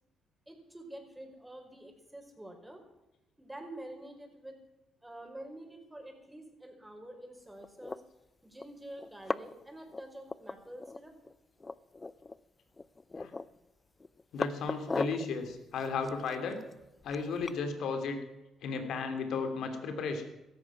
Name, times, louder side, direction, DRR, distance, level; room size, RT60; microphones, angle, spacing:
voice 1, 0.5-2.8 3.4-4.6 5.0-8.0 8.4-11.1, right 1 dB, 10° right, 4 dB, 5.4 m, -47 dB
sound 1, 7.6-8.0 8.6-8.7 9.0-9.6 9.9-11.0 11.2-11.3 11.6-12.4 12.8-13.6 14.0-15.3 15.8-17.6, left 3 dB, 25° left, 0.7 m, -37 dB
voice 2, 14.3-16.6 17.0-18.2 18.6-20.2, left 4 dB, 70° left, 7 dB, 3.1 m, -34 dB
17.0 x 14.0 x 6.1 m, 0.98 s
supercardioid pair, 60°, 0 cm